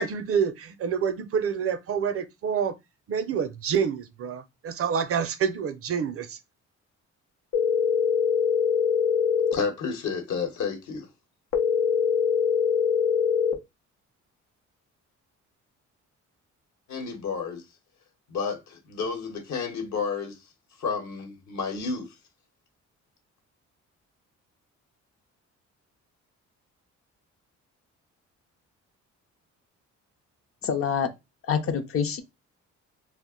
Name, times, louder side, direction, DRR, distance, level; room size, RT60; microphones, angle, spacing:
voice 1, 0.0-2.7 3.1-6.4, right 7 dB, 50° right, 0.4 m, -27 dB
sound 1, 7.5-9.5 11.5-13.5, left 6 dB, 85° left, 0.7 m, -23 dB
voice 2, 9.5-11.1 16.9-17.6 18.3-20.3 20.8-22.1, left 5 dB, 65° left, 1.0 m, -31 dB
voice 3, 30.6-31.1 31.5-32.2, left 7 dB, 50° left, 0.6 m, -26 dB
2.4 x 2.1 x 3.5 m
cardioid pair, 90°, 30 cm